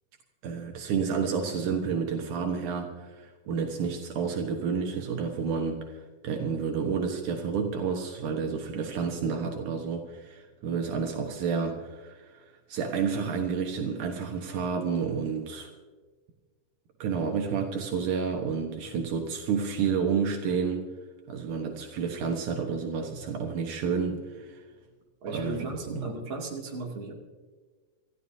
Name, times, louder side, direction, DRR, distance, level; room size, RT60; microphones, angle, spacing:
voice 1, 0.4-12.4 12.7-15.7 17.0-20.8 21.3-24.6 25.3-26.1, right 6 dB, 75° right, 2 dB, 2.7 m, -30 dB
voice 2, 25.2-27.1, right 2 dB, 40° right, -2 dB, 3.1 m, -36 dB
27.5 x 14.5 x 2.7 m, 1.4 s
omnidirectional pair, 3.6 m